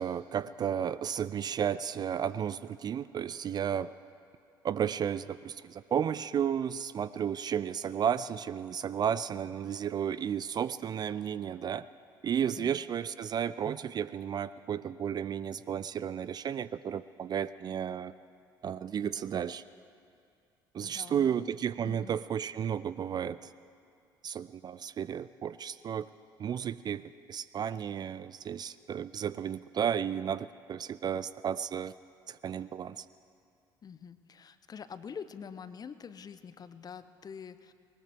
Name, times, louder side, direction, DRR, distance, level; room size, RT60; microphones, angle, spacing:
voice 1, 0.0-3.9 4.6-11.8 12.2-18.1 18.6-19.6 20.7-23.5 24.2-26.1 26.4-27.0 27.3-31.9 32.3-33.1, right 8 dB, 35° right, 16 dB, 0.4 m, -33 dB
voice 2, 20.8-21.4 21.8-22.1 33.8-37.7, left 6 dB, 35° left, 13 dB, 0.7 m, -45 dB
20.0 x 19.5 x 3.5 m, 2.4 s
figure-of-eight pair, 55°, 12 cm